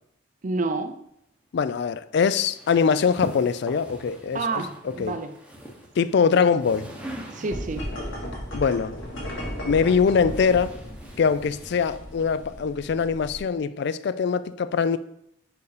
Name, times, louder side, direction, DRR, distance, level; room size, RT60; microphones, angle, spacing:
voice 1, 0.4-1.0 4.3-5.3 7.3-7.9, right 3 dB, 40° right, 0.5 m, -29 dB
voice 2, 1.5-5.2 6.0-6.9 8.5-9.0 9.6-10.8 11.2-15.0, left 6 dB, 55° left, 0.3 m, -23 dB
sound 1, 2.3-8.0 9.0-12.6, equal, 5° right, 0.9 m, -42 dB
sound 2, 7.5-13.4, equal, 80° left, 1.9 m, -35 dB
5.3 x 4.7 x 4.9 m
head